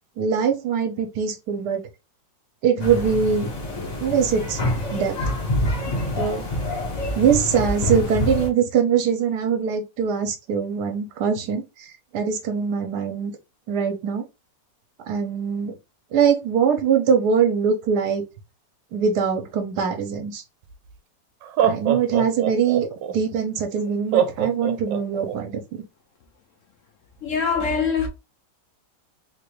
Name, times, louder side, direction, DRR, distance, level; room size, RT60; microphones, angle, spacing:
voice 1, 0.2-1.8 2.6-3.5 4.0-4.6 4.9-5.1 6.2-6.5 7.1-13.3 13.7-14.2 15.1-15.7 16.1-18.2 18.9-20.4 21.6-25.8, right 7 dB, 65° right, 1.3 m, -22 dB
sound 1, 2.8-8.5, left 1 dB, 35° left, 0.7 m, -26 dB
Laughter, 20.7-20.8 21.4-23.1 24.1-25.4, right 9 dB, 85° right, 1.3 m, -23 dB
voice 2, 27.2-28.1, left 5 dB, 60° left, 0.8 m, -23 dB
3.6 x 2.5 x 3.1 m
omnidirectional pair, 1.9 m